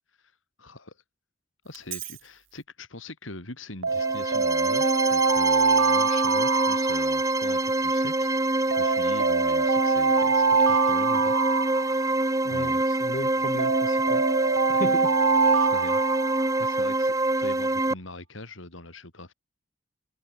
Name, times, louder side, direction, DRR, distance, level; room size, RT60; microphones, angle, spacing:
voice 1, 0.6-1.0 1.6-11.3 11.9-12.2 12.5-12.9 13.2-13.3 14.7-14.8 15.6-16.0 16.6-19.3, left 2 dB, 90° left, 4.8 m, -42 dB
Alarm, 1.7-2.1 3.8-7.6 8.7-12.5 13.6-16.8, right 4 dB, 90° right, 1.6 m, -25 dB
sound 1, 3.9-17.9, right 2 dB, 15° right, 1.4 m, -25 dB
voice 2, 12.4-14.2 14.8-15.1, left 1 dB, 45° left, 7.9 m, -35 dB
head